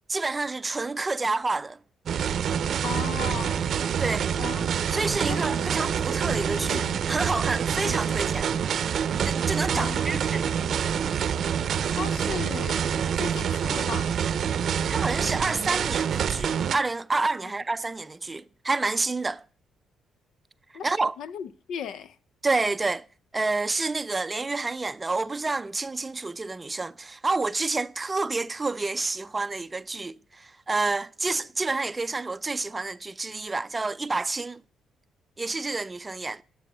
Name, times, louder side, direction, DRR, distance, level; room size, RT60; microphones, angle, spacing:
voice 1, 0.1-1.8 4.0-4.3 4.9-8.5 9.2-10.5 14.9-19.4 20.8-21.1 22.4-23.1 23.3-34.6 35.4-36.4, right 3 dB, 25° right, 0.4 m, -29 dB
sound 1, 2.1-16.8, right 8 dB, 60° right, 0.6 m, -26 dB
voice 2, 2.8-3.8 4.4-4.8 5.3-5.7 6.3-7.0 7.8-8.3 9.7-10.1 11.9-12.9 13.1-14.2 17.4-17.5 20.7-20.8 21.2-22.2, left 7 dB, 75° left, 0.5 m, -36 dB
11.0 x 6.9 x 6.6 m
cardioid pair, 90°, 0 cm